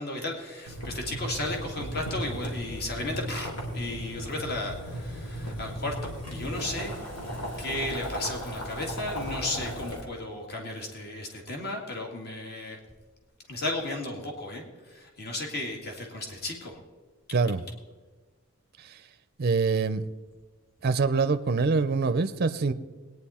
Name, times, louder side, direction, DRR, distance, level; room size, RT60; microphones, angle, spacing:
voice 1, 0.0-7.0 7.6-12.8 13.5-16.8, left 2 dB, 45° left, 1 dB, 2.0 m, -34 dB
Boiling, 0.7-10.0, equal, 85° left, 2.7 m, -36 dB
voice 2, 17.3-17.6 18.8-19.0 19.4-20.0 20.8-22.7, right 4 dB, 45° right, 12 dB, 0.5 m, -25 dB
20.5 x 9.6 x 4.3 m, 1.3 s
head